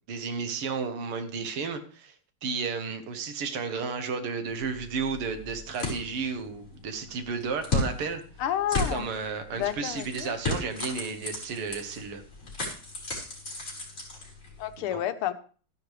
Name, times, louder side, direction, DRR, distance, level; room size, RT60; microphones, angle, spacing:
voice 1, 0.1-2.1 2.4-8.2 8.7-12.2 14.9-15.0, right 5 dB, 85° right, 8 dB, 2.2 m, -33 dB
sound 1, 4.5-14.8, left 2 dB, 35° left, 4.3 m, -35 dB
voice 2, 8.4-9.1 9.5-10.4 14.6-15.3, left 11 dB, 80° left, 10 dB, 1.7 m, -30 dB
13.0 x 10.5 x 3.3 m, 0.40 s
omnidirectional pair, 2.4 m